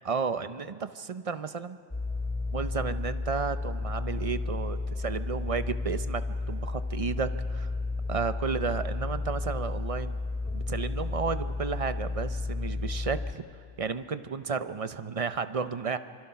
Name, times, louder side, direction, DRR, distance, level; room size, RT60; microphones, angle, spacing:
voice 1, 0.0-1.8 2.5-6.2 6.5-7.7 8.1-10.2 10.5-13.4 13.8-16.0, right 5 dB, 40° right, 11 dB, 0.6 m, -32 dB
sound 1, 1.9-13.3, left 3 dB, 10° left, 0.5 m, -32 dB
25.5 x 25.0 x 5.8 m, 2.1 s
omnidirectional pair, 1.1 m